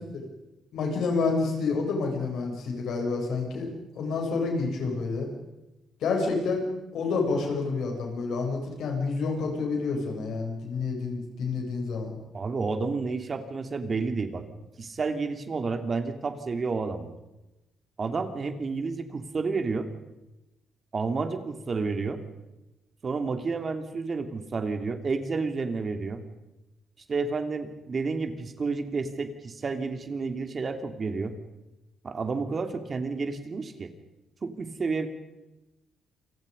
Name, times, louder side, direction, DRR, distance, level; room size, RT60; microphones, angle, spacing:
voice 1, 0.7-3.7 3.9-5.3 6.0-6.6 6.9-12.1, left 4 dB, 75° left, 1 dB, 7.8 m, -28 dB
voice 2, 12.3-14.4 14.8-17.1 18.0-19.9 20.9-22.2 23.0-26.2 27.1-31.3 32.0-33.9 34.4-35.1, right 4 dB, 40° right, 8 dB, 2.7 m, -30 dB
28.5 x 23.5 x 5.4 m, 0.99 s
cardioid pair, 90°, 0 cm